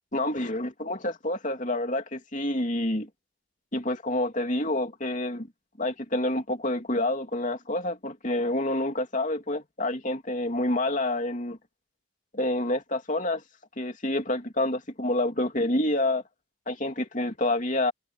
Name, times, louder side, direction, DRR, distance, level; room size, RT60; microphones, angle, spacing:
voice 1, 0.1-3.1 3.7-5.5 5.8-11.6 12.3-13.4 13.8-16.2 16.7-17.9, left 1 dB, 40° left, 2.9 m, -28 dB
head